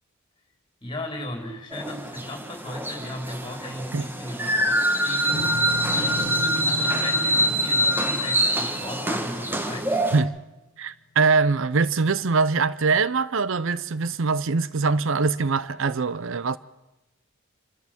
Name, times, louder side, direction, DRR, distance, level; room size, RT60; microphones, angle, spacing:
voice 1, 0.8-10.0, left 1 dB, 20° left, 3.8 m, -36 dB
sound 1, 1.7-10.2, equal, 10° right, 1.2 m, -25 dB
sound 2, 5.3-9.8, left 2 dB, 90° left, 1.0 m, -36 dB
voice 2, 10.8-16.6, right 4 dB, 65° right, 0.6 m, -23 dB
27.0 x 13.0 x 7.4 m
head